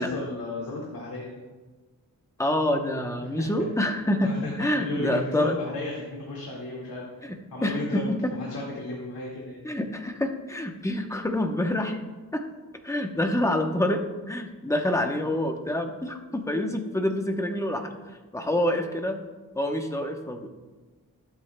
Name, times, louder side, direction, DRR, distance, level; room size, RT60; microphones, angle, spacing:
voice 1, 0.0-1.3 4.2-4.5 4.8-7.1 7.5-8.0 8.3-9.6, left 2 dB, 75° left, -3 dB, 1.9 m, -34 dB
voice 2, 2.4-5.6 7.2-8.3 9.6-12.0 12.3-12.4 12.8-17.9 18.3-19.2 19.5-20.5, left 1 dB, 10° left, 4 dB, 0.8 m, -27 dB
20.0 x 8.2 x 2.2 m, 1.2 s
wide cardioid pair, 170°, 36 cm